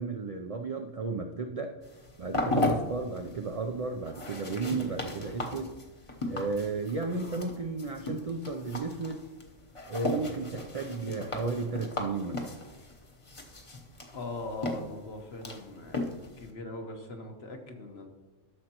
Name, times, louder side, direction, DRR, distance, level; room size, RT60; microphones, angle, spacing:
voice 1, 0.0-1.7 2.2-5.7 6.3-9.2 9.9-12.5, right 4 dB, 50° right, 3 dB, 0.4 m, -33 dB
sound 1, 1.8-16.5, left 2 dB, 30° left, 0.9 m, -36 dB
voice 2, 14.1-16.1 16.4-18.1, left 2 dB, 55° left, 3 dB, 1.3 m, -40 dB
13.0 x 6.5 x 2.9 m, 1.2 s
omnidirectional pair, 1.3 m